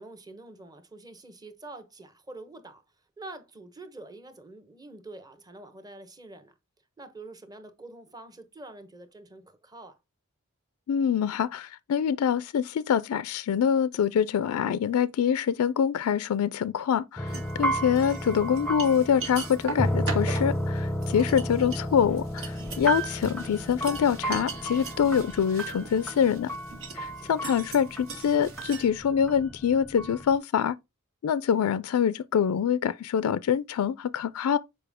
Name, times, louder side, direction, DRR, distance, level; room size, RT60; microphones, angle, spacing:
voice 1, 0.0-2.8 3.2-6.5 7.0-10.0 21.0-21.3 26.9-27.3, right 2 dB, 20° right, 1.0 m, -46 dB
voice 2, 10.9-26.5 26.9-30.8 31.2-34.6, left 8 dB, 75° left, 0.3 m, -25 dB
sound 1, 17.2-30.3, equal, 5° left, 0.6 m, -33 dB
sound 2, 17.3-17.5 18.0-28.9, right 4 dB, 65° right, 1.9 m, -40 dB
6.8 x 5.0 x 3.5 m
head